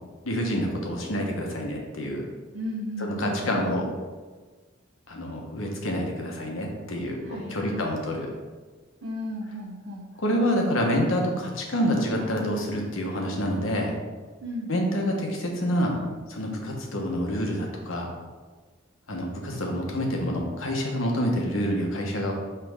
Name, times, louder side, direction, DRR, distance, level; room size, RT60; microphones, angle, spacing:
voice 1, 0.2-2.3 3.0-3.9 5.1-8.3 10.2-13.9 14.7-15.9 16.3-18.1 19.1-22.3, equal, 80° left, 1 dB, 1.1 m, -27 dB
voice 2, 2.5-3.8 7.2-7.9 9.0-10.1 14.4-14.7, left 1 dB, 65° right, -4 dB, 0.7 m, -35 dB
5.8 x 3.3 x 4.8 m, 1.4 s
head